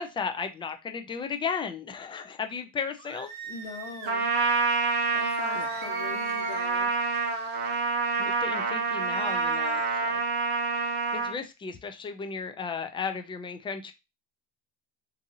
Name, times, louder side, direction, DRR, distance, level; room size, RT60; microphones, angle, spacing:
voice 1, 0.0-3.3 5.5-5.7 8.2-10.2 11.1-13.9, left 5 dB, 15° left, 7 dB, 0.4 m, -35 dB
sound 1, 3.0-4.2 5.4-6.8 8.8-10.0, right 4 dB, 65° right, 1.0 m, -43 dB
voice 2, 3.5-4.3 5.1-6.9, left 4 dB, 65° left, 0 dB, 1.2 m, -41 dB
Trumpet, 4.1-11.4, right 4 dB, 35° right, 0.8 m, -27 dB
2.6 x 2.6 x 2.6 m, 0.26 s
supercardioid pair, 100°, 31 cm